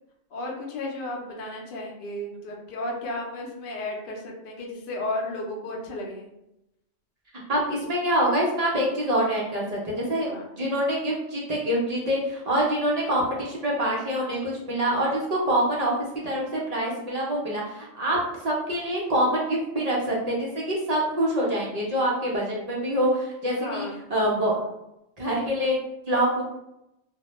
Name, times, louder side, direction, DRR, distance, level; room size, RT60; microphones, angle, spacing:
voice 1, 0.3-6.3 10.2-10.5 23.6-24.0, left 1 dB, 55° left, 0 dB, 0.7 m, -33 dB
voice 2, 7.5-10.3 10.6-15.9 16.2-18.2 18.4-24.6 25.2-25.8 26.1-26.4, right 1 dB, 50° right, -5 dB, 0.5 m, -25 dB
2.2 x 2.0 x 2.9 m, 0.86 s
omnidirectional pair, 1.2 m